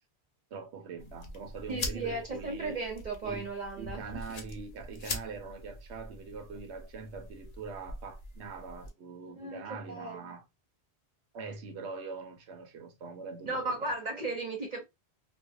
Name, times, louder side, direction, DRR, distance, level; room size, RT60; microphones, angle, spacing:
voice 1, 0.5-2.8 3.2-3.5 3.8-10.5 11.3-13.9, right 4 dB, 85° right, 1.0 m, -43 dB
sound 1, 1.0-8.9, left 2 dB, 45° left, 0.6 m, -43 dB
voice 2, 1.7-4.2 9.4-10.3 13.5-14.8, right 2 dB, 45° right, 0.8 m, -36 dB
2.5 x 2.1 x 2.4 m
omnidirectional pair, 1.1 m